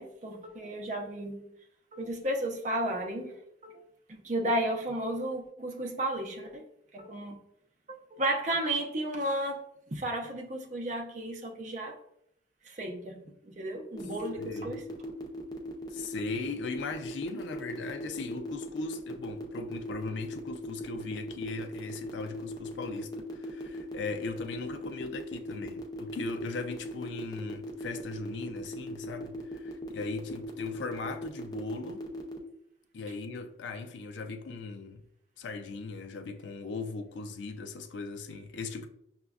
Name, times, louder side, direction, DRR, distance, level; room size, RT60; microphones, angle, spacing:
voice 1, 0.0-1.5 1.9-3.4 3.6-3.8 4.1-6.6 6.9-7.4 7.9-12.0 12.6-14.8, right 1 dB, 40° right, 0.5 m, -33 dB
sound 1, 13.9-32.4, equal, 20° left, 0.4 m, -39 dB
voice 2, 14.4-14.8 15.9-32.0 32.9-35.0 35.4-38.9, left 3 dB, 85° left, 0.4 m, -38 dB
5.9 x 2.2 x 2.3 m
head